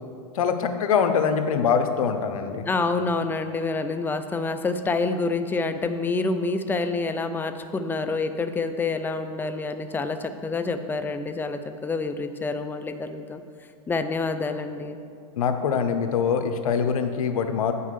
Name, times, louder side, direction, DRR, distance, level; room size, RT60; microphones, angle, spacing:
voice 1, 0.3-2.6 15.4-17.7, left 6 dB, 85° left, 8 dB, 0.8 m, -23 dB
voice 2, 2.7-13.4 13.9-15.0, left 3 dB, 10° left, 9 dB, 0.5 m, -27 dB
8.2 x 5.6 x 6.4 m, 2.3 s
hypercardioid pair, 120°, 18 cm